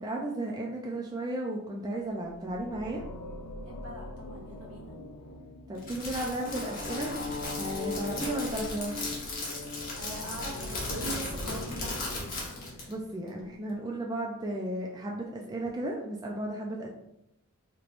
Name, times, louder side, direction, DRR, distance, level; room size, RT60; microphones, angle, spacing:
voice 1, 0.0-3.0 5.7-7.1 7.5-9.1 12.9-16.9, right 1 dB, 20° right, -1 dB, 0.3 m, -34 dB
sound 1, 2.1-13.3, left 3 dB, 70° left, 0.4 m, -41 dB
voice 2, 3.6-4.9 8.1-8.3 10.0-12.3, right 2 dB, 80° right, -3 dB, 1.1 m, -41 dB
Crackle, 5.8-12.9, left 2 dB, 40° left, 0.9 m, -37 dB
3.3 x 2.9 x 2.5 m, 0.80 s
head